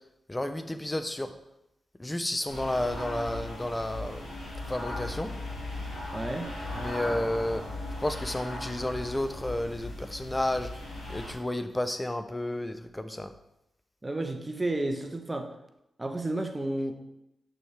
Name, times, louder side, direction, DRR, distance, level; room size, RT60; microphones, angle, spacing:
voice 1, 0.3-1.3 2.0-5.3 6.7-7.6 8.0-10.8 11.1-13.3, left 1 dB, 20° left, 10 dB, 0.7 m, -31 dB
sound 1, 2.5-11.3, left 1 dB, 90° left, 2.4 m, -38 dB
voice 2, 6.1-6.5 14.0-15.5 16.0-16.9, right 2 dB, 25° right, 5 dB, 1.0 m, -31 dB
6.2 x 6.2 x 3.4 m, 0.87 s
supercardioid pair, 40°, 0 cm